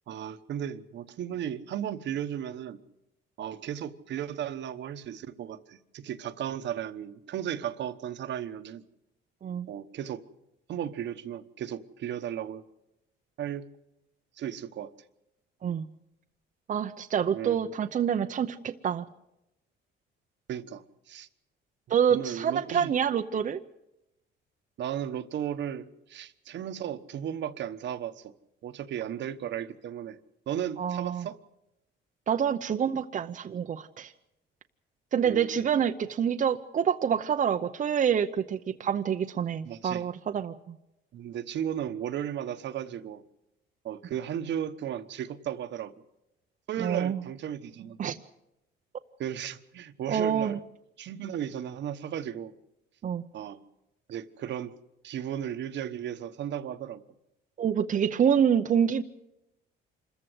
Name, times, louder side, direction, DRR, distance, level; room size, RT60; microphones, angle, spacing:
voice 1, 0.1-2.8 3.4-8.8 9.7-10.2 10.7-12.6 13.4-13.6 14.4-14.9 17.3-17.7 20.5-21.3 22.1-23.0 24.8-28.3 28.6-30.2 30.5-31.4 35.2-35.6 39.6-40.1 41.1-43.2 43.8-45.9 46.7-48.0 49.2-50.6 51.0-52.5 53.3-53.6 54.1-54.7 55.0-57.0, right 10 dB, 60° right, 10 dB, 1.1 m, -35 dB
voice 2, 16.7-19.0 21.9-23.6 30.8-31.3 32.3-34.1 35.1-40.7 46.8-47.2 48.0-48.2 50.1-50.6 53.0-53.2 57.6-59.0, right 8 dB, 40° right, 6 dB, 0.7 m, -27 dB
26.0 x 14.5 x 7.9 m, 0.90 s
cardioid pair, 120°, 20 cm